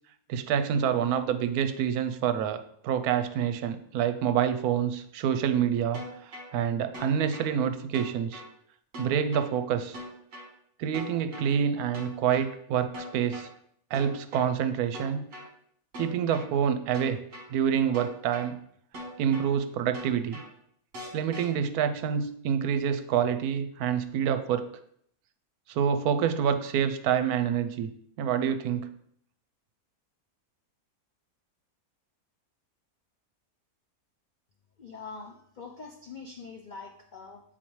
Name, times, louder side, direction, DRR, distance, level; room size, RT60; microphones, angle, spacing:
voice 1, 0.3-8.4 9.0-10.0 10.8-13.5 13.9-15.2 16.0-17.2 17.5-18.6 19.2-20.4 21.1-24.7 25.7-27.9 28.2-28.9, right 8 dB, 85° right, 9 dB, 1.1 m, -27 dB
sound 1, 5.9-6.5 6.9-7.5 7.9-8.5 8.9-9.5 9.9-10.5 10.9-11.5 11.9-12.5 12.9-13.5 13.9-14.5 14.9-15.5 15.9-16.5 16.9-17.5 17.9-18.5 18.9-19.5 19.9-20.5 20.9-21.5, equal, 60° right, 1.5 m, -41 dB
voice 2, 34.8-37.4, left 4 dB, 85° left, 2 dB, 0.4 m, -44 dB
7.5 x 4.1 x 3.0 m, 0.68 s
omnidirectional pair, 1.6 m